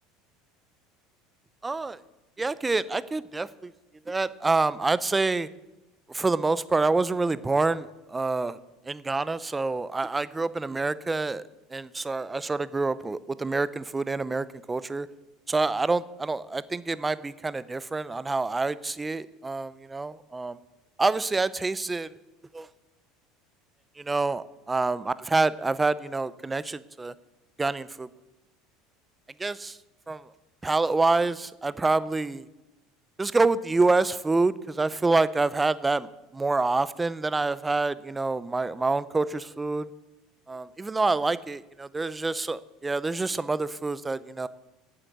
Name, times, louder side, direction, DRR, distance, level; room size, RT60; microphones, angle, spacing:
voice 1, 1.6-2.0 2.4-3.7 4.1-5.5 6.1-8.6 8.8-11.4 11.7-15.1 15.5-20.6 21.0-22.1 22.5-22.7 24.0-27.1 27.6-28.1 29.4-29.8 30.1-30.3 30.6-32.5 33.2-36.1 36.3-39.9 40.5-44.5, right 3 dB, 10° right, 17 dB, 0.4 m, -27 dB
9.1 x 8.0 x 7.9 m, 1.0 s
cardioid pair, 140°, 0 cm